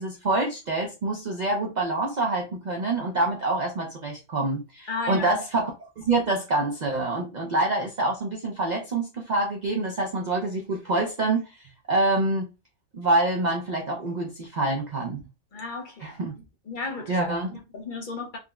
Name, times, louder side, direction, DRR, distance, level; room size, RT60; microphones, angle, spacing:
voice 1, 0.0-5.7 6.0-11.5 11.9-12.5 12.9-15.2 16.0-16.3 17.1-17.6, right 2 dB, 50° right, 0.5 m, -26 dB
voice 2, 4.9-5.3 15.5-16.1 16.7-17.2 17.5-18.4, left 4 dB, 50° left, 0.7 m, -33 dB
3.5 x 2.0 x 2.3 m
omnidirectional pair, 1.3 m